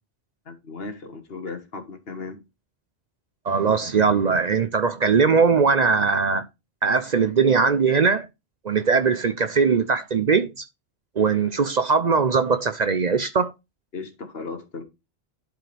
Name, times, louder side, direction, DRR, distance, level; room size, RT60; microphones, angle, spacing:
voice 1, 0.5-2.4 13.9-14.8, left 4 dB, 65° left, 1.6 m, -36 dB
voice 2, 3.5-6.5 6.8-8.3 8.6-10.5 11.2-13.5, right 5 dB, 45° right, 0.7 m, -20 dB
11.5 x 4.9 x 3.4 m
omnidirectional pair, 1.1 m